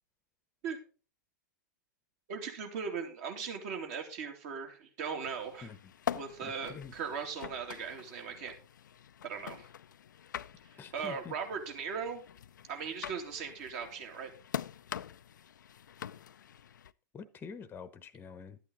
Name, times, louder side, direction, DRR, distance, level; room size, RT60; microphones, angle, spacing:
voice 1, 2.3-5.7 6.1-8.5 9.2-9.7 10.9-12.2 12.7-14.3, right 6 dB, 50° right, 2.7 m, -38 dB
sound 1, 5.2-16.9, left 9 dB, 75° left, 0.4 m, -44 dB
voice 2, 6.4-6.9 10.8-11.3 17.1-18.6, left 6 dB, 20° left, 0.9 m, -46 dB
11.5 x 8.4 x 4.0 m
hypercardioid pair, 110°, 10 cm